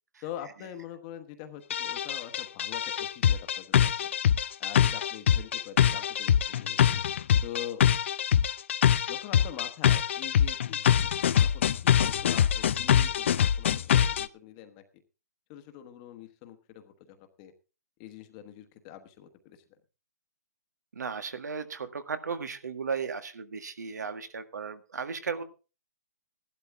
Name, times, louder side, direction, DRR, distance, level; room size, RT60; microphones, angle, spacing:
voice 1, 0.2-4.1 4.6-6.9 7.4-7.8 9.1-10.8 11.4-15.0 15.5-17.5 18.0-19.6, left 11 dB, 20° left, 8 dB, 1.2 m, -44 dB
sound 1, 1.7-14.3, left 9 dB, 45° left, 0.5 m, -24 dB
voice 2, 20.9-25.4, right 5 dB, 80° right, 10 dB, 1.8 m, -35 dB
15.0 x 12.0 x 3.6 m, 0.33 s
hypercardioid pair, 165°, 9 cm